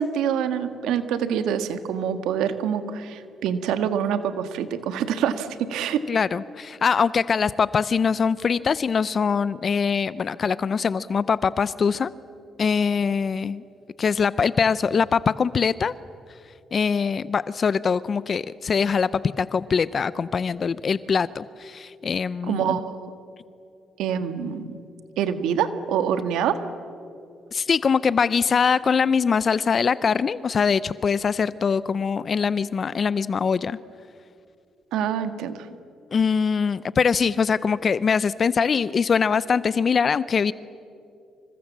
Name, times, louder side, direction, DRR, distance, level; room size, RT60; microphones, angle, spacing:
voice 1, 0.0-6.0 22.5-23.1 24.0-24.8 25.2-26.6 34.9-35.7, right 8 dB, 90° right, 9 dB, 1.6 m, -26 dB
voice 2, 6.1-12.1 12.6-13.6 14.0-15.9 16.7-22.8 27.5-33.8 36.1-40.5, left 6 dB, 45° left, 17 dB, 0.6 m, -23 dB
27.5 x 25.5 x 7.4 m, 2.5 s
cardioid pair, 90°, 0 cm